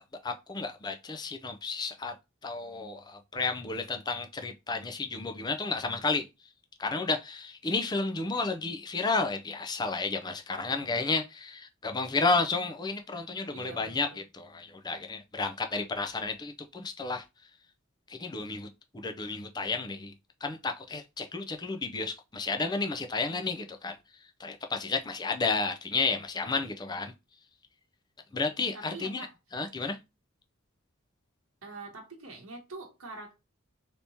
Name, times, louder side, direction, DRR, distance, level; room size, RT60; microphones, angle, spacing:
voice 1, 0.0-2.1 2.4-6.2 6.8-17.2 18.1-18.7 18.9-20.1 20.4-24.0 24.4-27.1 28.3-29.3 29.5-30.0, left 3 dB, 20° left, 0.4 m, -32 dB
voice 2, 13.5-14.2 28.7-29.3 31.6-33.4, right 3 dB, 85° right, 1.0 m, -44 dB
3.4 x 2.8 x 2.6 m
head